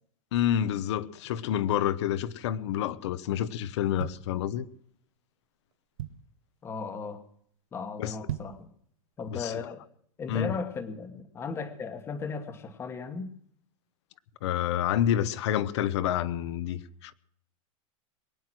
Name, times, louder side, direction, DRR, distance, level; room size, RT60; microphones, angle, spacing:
voice 1, 0.3-4.7 8.0-8.2 9.3-9.5 10.3-10.5 14.4-17.1, left 10 dB, 55° left, 0.9 m, -28 dB
sound 1, 4.0-4.9 5.4-5.5 5.7-6.5 6.9-7.2 7.5-7.6 8.1-8.7 9.1-9.2, right 11 dB, 80° right, 1.1 m, -38 dB
voice 2, 6.6-7.2 7.7-8.7 9.2-9.8 10.2-13.3, left 5 dB, 15° left, 1.3 m, -36 dB
22.0 x 9.3 x 6.2 m
supercardioid pair, 175°, 18 cm